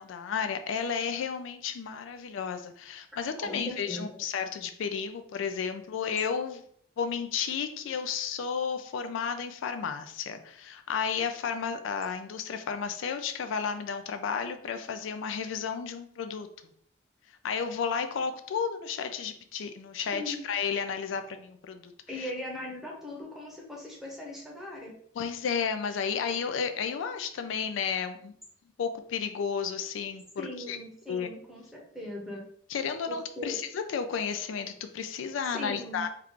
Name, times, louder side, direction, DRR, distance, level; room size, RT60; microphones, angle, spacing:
voice 1, 0.0-6.6 7.0-16.5 17.4-22.3 25.2-28.3 28.8-30.2 30.7-30.8 31.1-31.3 32.7-36.1, left 6 dB, 80° left, 8 dB, 0.3 m, -32 dB
voice 2, 3.4-4.1 20.1-20.4 22.1-24.9 30.4-32.4 33.1-33.6 35.5-36.0, left 1 dB, ahead, -2 dB, 0.7 m, -39 dB
2.9 x 2.4 x 3.5 m, 0.62 s
head